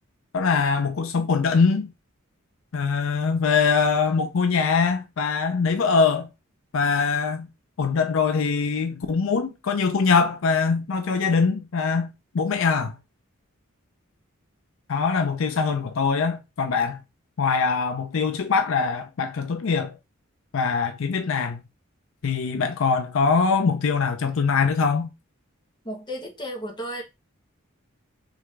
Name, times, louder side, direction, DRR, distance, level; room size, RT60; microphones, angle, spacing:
voice 1, 0.3-1.9 2.7-6.3 6.7-7.5 7.8-12.9 14.9-17.0 17.4-20.0 20.5-21.6 22.2-25.1, left 5 dB, 65° left, 0.5 m, -23 dB
voice 2, 25.8-27.0, equal, 20° left, 1.1 m, -33 dB
3.6 x 3.4 x 3.2 m
head